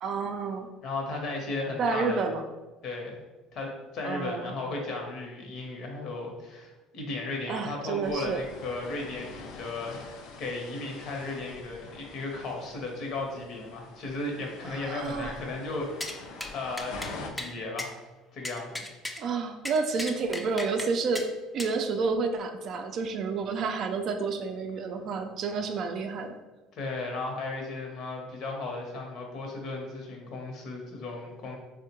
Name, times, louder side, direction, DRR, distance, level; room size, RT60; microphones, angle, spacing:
voice 1, 0.0-0.7 1.8-2.4 4.0-4.5 7.5-8.4 14.7-15.3 19.2-21.3 21.5-26.3, right 4 dB, 55° right, 6 dB, 0.4 m, -30 dB
voice 2, 0.8-2.2 2.8-3.2 3.5-15.9 16.5-18.0 18.3-18.8 26.7-31.6, left 2 dB, 60° left, 1 dB, 0.8 m, -35 dB
sound 1, 8.0-17.3, left 4 dB, 75° left, 0.4 m, -45 dB
sound 2, 16.0-16.2 16.4-16.5 16.8-17.1 17.4-17.5 17.8-17.9 18.4-19.2 19.6-20.9 21.1-21.3 21.6-21.7, left 1 dB, 10° left, 0.4 m, -36 dB
3.5 x 2.1 x 2.9 m, 1.2 s
supercardioid pair, 85°, 0 cm